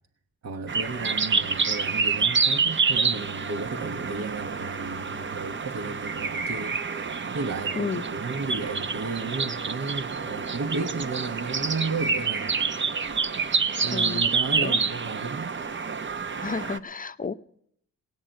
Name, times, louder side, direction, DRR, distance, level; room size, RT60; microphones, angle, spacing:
voice 1, 0.4-12.7 13.8-15.5, right 4 dB, 50° right, 1.1 m, -33 dB
sound 1, 0.7-16.8, right 5 dB, 35° right, 0.8 m, -28 dB
voice 2, 13.9-14.2 14.6-14.8 16.4-17.3, left 5 dB, 25° left, 0.7 m, -31 dB
17.5 x 6.5 x 9.0 m
cardioid pair, 60°, 34 cm